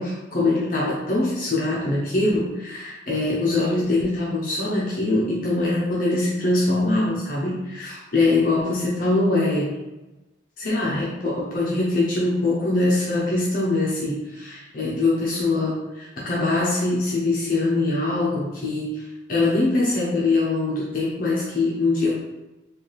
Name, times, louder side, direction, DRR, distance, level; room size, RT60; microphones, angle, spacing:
voice 1, 0.0-9.8 10.6-22.1, left 2 dB, 45° left, -5 dB, 0.6 m, -23 dB
3.3 x 2.4 x 4.0 m, 1.0 s
head